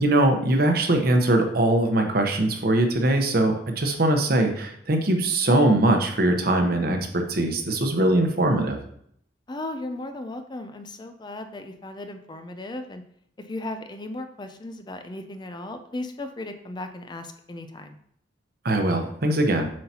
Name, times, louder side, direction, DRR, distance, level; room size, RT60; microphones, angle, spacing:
voice 1, 0.0-8.8 18.6-19.7, right 1 dB, 55° right, 4 dB, 1.0 m, -21 dB
voice 2, 9.5-13.0 13.5-18.0, left 2 dB, 25° left, 7 dB, 0.5 m, -36 dB
7.5 x 5.6 x 2.9 m, 0.66 s
head